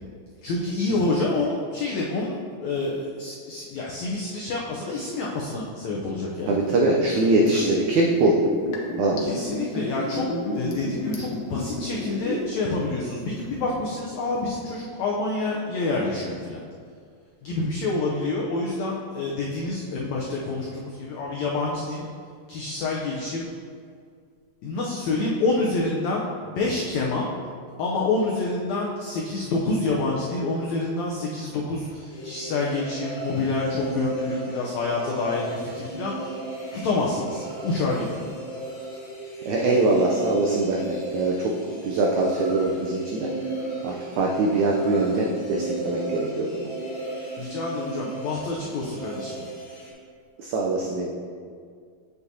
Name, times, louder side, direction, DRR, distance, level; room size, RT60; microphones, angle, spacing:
voice 1, 0.4-6.5 9.2-16.6 17.4-22.1 22.5-23.5 24.6-27.3 27.8-36.3 36.7-38.3 47.4-49.4, left 3 dB, 90° left, -3 dB, 1.5 m, -27 dB
Liquid, 6.4-12.6 12.9-13.0, left 1 dB, 70° left, 1.7 m, -31 dB
voice 2, 6.5-8.4 9.0-9.2 9.7-9.8 39.4-43.3 43.8-46.7 50.4-51.1, right 2 dB, 85° right, -1 dB, 1.6 m, -23 dB
sound 1, 32.1-49.9, right 2 dB, 50° left, 1.5 m, -35 dB
8.2 x 6.8 x 2.7 m, 2.1 s
omnidirectional pair, 4.1 m